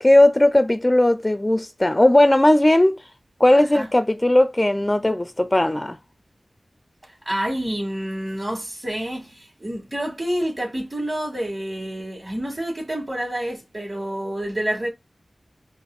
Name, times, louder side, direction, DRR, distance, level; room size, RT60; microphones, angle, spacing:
voice 1, 0.0-3.0 3.4-6.0, left 1 dB, 25° left, 0.4 m, -17 dB
voice 2, 7.3-14.9, right 1 dB, 30° right, 1.8 m, -28 dB
5.1 x 2.5 x 2.3 m
cardioid pair, 45°, 0 cm